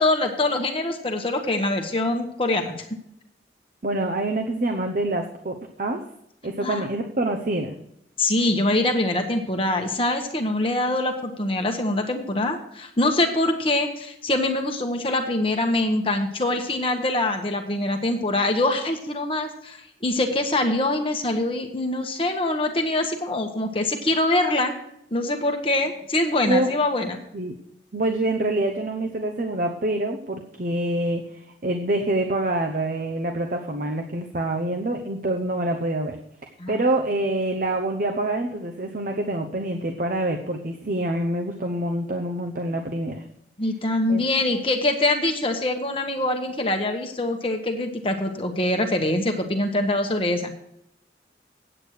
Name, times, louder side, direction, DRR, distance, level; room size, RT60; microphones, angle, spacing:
voice 1, 0.0-3.0 6.6-6.9 8.2-24.7 25.1-27.2 36.6-36.8 43.6-50.5, left 2 dB, 30° left, 4 dB, 1.1 m, -24 dB
voice 2, 3.8-6.0 6.4-7.8 26.5-26.7 27.3-27.5 27.9-36.2 36.7-43.2 44.1-44.2, right 1 dB, 50° right, 3 dB, 0.9 m, -26 dB
8.8 x 8.4 x 6.4 m, 0.77 s
head